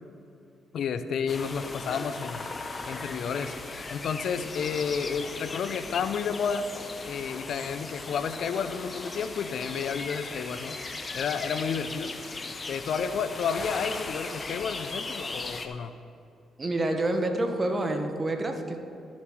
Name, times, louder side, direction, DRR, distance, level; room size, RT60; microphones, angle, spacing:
voice 1, 0.7-2.5 2.9-3.6 3.9-6.7 7.1-10.8 11.1-12.3 12.7-15.9, left 6 dB, 65° left, 11 dB, 0.5 m, -31 dB
sound 1, 1.3-15.7, left 3 dB, 30° left, 0.9 m, -38 dB
voice 2, 16.6-18.8, right 2 dB, 30° right, 5 dB, 1.3 m, -28 dB
13.0 x 7.3 x 4.6 m, 2.7 s
cardioid pair, 90°, 0 cm